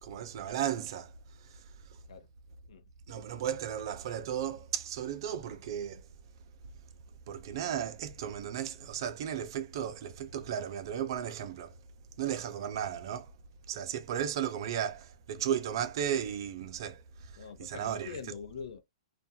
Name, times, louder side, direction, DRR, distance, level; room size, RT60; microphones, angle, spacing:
voice 1, 0.0-2.0 3.1-6.1 7.3-11.8 12.2-13.3 13.7-18.2, right 9 dB, 45° right, 0.5 m, -35 dB
voice 2, 17.4-18.8, left 6 dB, 70° left, 0.7 m, -43 dB
2.5 x 2.2 x 2.6 m
hypercardioid pair, 165°, 3 cm